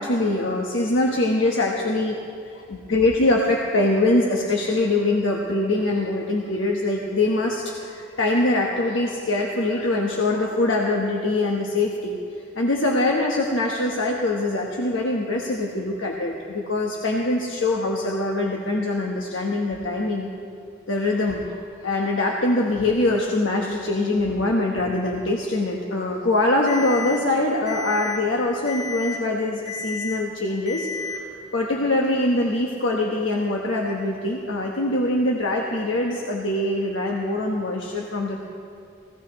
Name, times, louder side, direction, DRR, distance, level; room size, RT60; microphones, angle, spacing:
voice 1, 0.0-2.2 2.4-12.2 12.5-20.3 20.9-38.4, left 2 dB, 90° left, -1 dB, 1.2 m, -23 dB
Alarm, 26.7-27.2 27.7-28.2 28.7-29.2 29.7-30.2 30.7-31.2, left 4 dB, 70° left, 3.1 m, -32 dB
19.0 x 16.0 x 3.1 m, 2.4 s
head